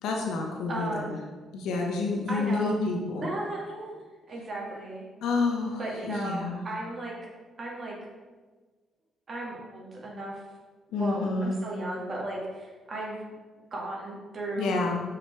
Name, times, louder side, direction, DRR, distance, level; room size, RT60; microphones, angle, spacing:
voice 1, 0.0-1.2 1.5-3.3 5.2-6.7 10.9-11.5 14.6-15.0, left 3 dB, 85° left, 0 dB, 1.0 m, -29 dB
voice 2, 0.7-1.2 2.3-2.8 3.2-4.0 4.3-5.1 5.8-7.1 7.6-8.0 9.3-10.4 11.0-13.2 13.7-14.9, right 2 dB, 45° right, -3 dB, 2.0 m, -35 dB
6.1 x 5.1 x 4.8 m, 1.3 s
cardioid pair, 90°, 0 cm